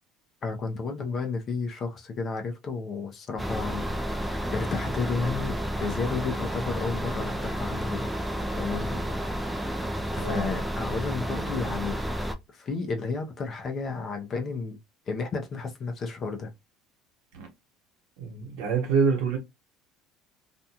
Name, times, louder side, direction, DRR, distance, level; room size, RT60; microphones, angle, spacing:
voice 1, 0.4-3.9 4.2-8.1 8.6-9.0 10.1-12.0 12.5-14.8 15.1-16.5, left 4 dB, 35° left, 0.6 m, -32 dB
sound 1, 3.4-12.3, equal, 5° right, 0.3 m, -31 dB
voice 2, 10.1-10.5 17.3-17.5 18.2-19.4, right 5 dB, 80° right, 1.1 m, -26 dB
2.5 x 2.3 x 2.8 m
cardioid pair, 140°, 0 cm